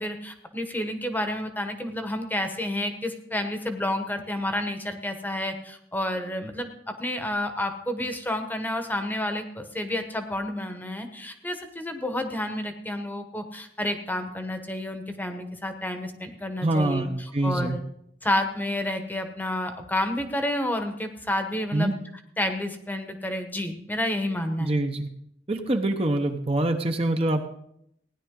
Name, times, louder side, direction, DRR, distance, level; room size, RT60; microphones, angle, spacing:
voice 1, 0.0-17.8 18.2-21.9 22.4-24.7, left 1 dB, 10° left, 6 dB, 1.0 m, -30 dB
voice 2, 16.6-17.8 21.7-21.9 24.6-25.1 25.5-27.5, right 2 dB, 30° right, 5 dB, 0.8 m, -25 dB
16.5 x 10.0 x 3.7 m, 0.72 s
head